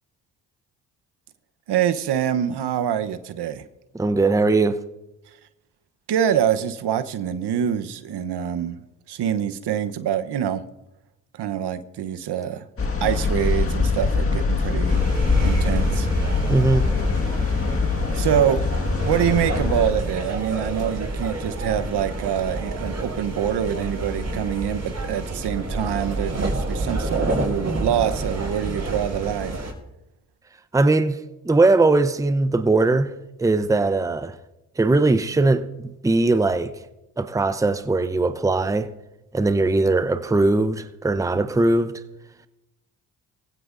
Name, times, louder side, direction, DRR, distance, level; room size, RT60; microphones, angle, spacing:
voice 1, 1.7-3.7 6.1-8.8 9.1-10.6 11.4-12.7 13.0-15.0 15.4-16.1 18.1-18.6 19.0-29.6, right 9 dB, 60° right, 1.0 m, -25 dB
voice 2, 3.9-4.8 16.5-16.9 30.7-31.2 31.4-33.1 33.4-34.4 34.8-36.7 37.2-38.9 39.3-42.0, right 2 dB, 5° right, 0.8 m, -20 dB
sound 1, 12.8-19.9, left 4 dB, 30° left, 1.8 m, -23 dB
sound 2, 14.9-29.7, right 2 dB, 35° right, 6.4 m, -29 dB
23.5 x 16.0 x 2.6 m
hypercardioid pair, 55°, 46 cm